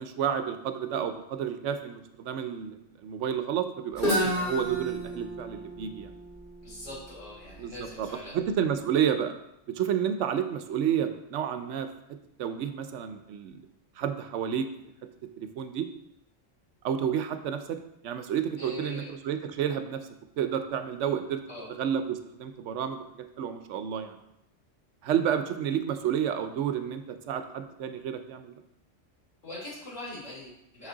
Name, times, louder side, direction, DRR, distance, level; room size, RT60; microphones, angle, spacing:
voice 1, 0.0-6.1 7.6-8.1 8.3-9.3 9.7-11.9 12.4-13.6 14.0-14.7 15.4-15.9 16.8-20.1 20.4-21.4 21.8-24.2 25.0-28.5, right 8 dB, 75° right, 9 dB, 0.9 m, -30 dB
Guitar, 4.0-7.7, equal, 40° left, 2.4 m, -32 dB
voice 2, 6.6-8.4 18.6-19.1 21.5-21.7 29.4-30.9, left 2 dB, 80° left, -7 dB, 3.3 m, -42 dB
6.1 x 5.8 x 3.9 m, 0.84 s
omnidirectional pair, 1.3 m